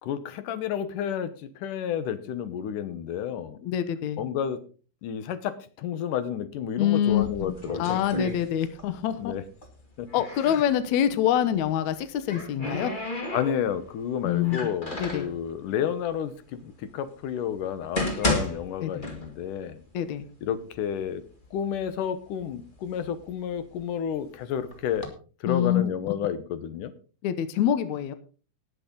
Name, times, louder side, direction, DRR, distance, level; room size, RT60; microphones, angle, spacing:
voice 1, 0.0-3.6 4.2-4.6 5.0-8.0 9.2-9.4 10.0-10.1 10.5-10.6 13.3-16.6 16.9-19.8 20.4-21.2 21.5-25.1 25.4-26.9, left 9 dB, 70° left, 12 dB, 2.2 m, -31 dB
voice 2, 3.6-4.2 6.8-7.5 7.8-9.3 10.1-12.9 14.2-14.7 15.0-15.3 18.8-19.0 19.9-20.2 25.5-25.9 27.2-28.1, left 10 dB, 85° left, 11 dB, 1.6 m, -25 dB
sound 1, 7.1-9.0 9.3-10.7 11.8-13.9 14.4-15.3 16.1-16.2 16.9-17.0 17.6-19.6 19.9-20.0 20.7-20.8 21.2-21.9 22.4-24.1 24.7-25.1, left 1 dB, 20° left, 1.2 m, -33 dB
19.0 x 8.3 x 3.8 m, 0.37 s
omnidirectional pair, 4.6 m